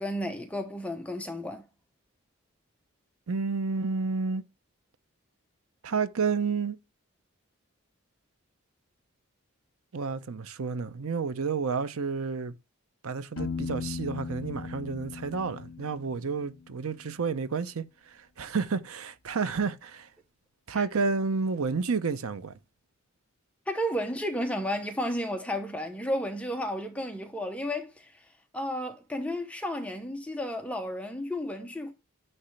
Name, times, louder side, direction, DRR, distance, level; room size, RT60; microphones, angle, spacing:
voice 1, 0.0-1.6 20.7-20.8 23.7-28.1 28.5-31.9, equal, 5° left, 0.8 m, -32 dB
voice 2, 3.3-4.4 5.8-6.8 9.9-12.5 13.0-20.1 20.7-22.5, right 5 dB, 80° right, 0.7 m, -30 dB
Piano, 13.4-17.1, left 5 dB, 75° left, 0.9 m, -38 dB
9.8 x 3.3 x 3.2 m
head